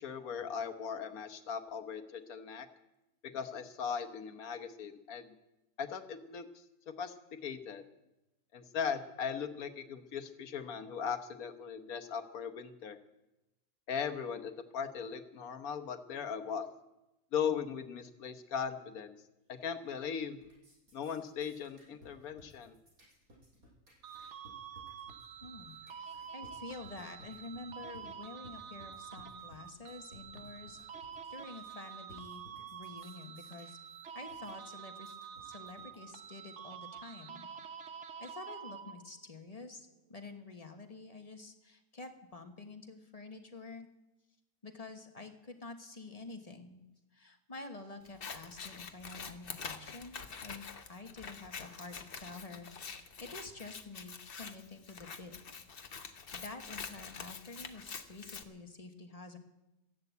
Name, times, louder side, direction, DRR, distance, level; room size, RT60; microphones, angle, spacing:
voice 1, 0.0-2.7 3.3-5.3 5.8-6.4 6.9-7.1 7.4-7.8 8.5-13.0 13.9-16.7 17.3-19.1 19.5-20.4 20.9-22.8, left 7 dB, 90° left, 9 dB, 1.6 m, -38 dB
sound 1, 19.6-20.1 20.3-36.3, equal, 85° right, 6.3 m, -59 dB
sound 2, 24.0-39.3, right 7 dB, 60° right, 1.0 m, -48 dB
voice 2, 25.4-32.4 32.7-33.8 34.1-37.5 38.2-43.9 44.6-46.8 47.1-55.3 56.1-59.4, left 3 dB, 25° left, 5 dB, 1.3 m, -49 dB
Scissors, 48.1-58.4, left 5 dB, 45° left, 1.0 m, -46 dB
14.0 x 11.0 x 8.3 m, 0.96 s
omnidirectional pair, 1.5 m